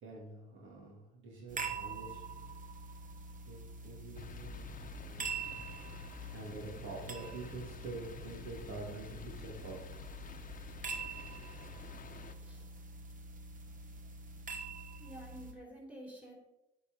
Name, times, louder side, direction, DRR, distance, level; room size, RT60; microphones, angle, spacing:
voice 1, 0.0-2.4 3.5-5.3 6.3-9.8, right 2 dB, 80° right, -3 dB, 2.9 m, -46 dB
sound 1, 1.5-15.5, right 4 dB, 40° right, 1.2 m, -45 dB
sound 2, 4.1-12.3, left 6 dB, 45° left, 0.8 m, -50 dB
voice 2, 12.4-12.7 15.0-16.3, right 1 dB, 5° right, -1 dB, 3.8 m, -50 dB
9.1 x 5.4 x 5.5 m, 0.89 s
cardioid pair, 90°, 20 cm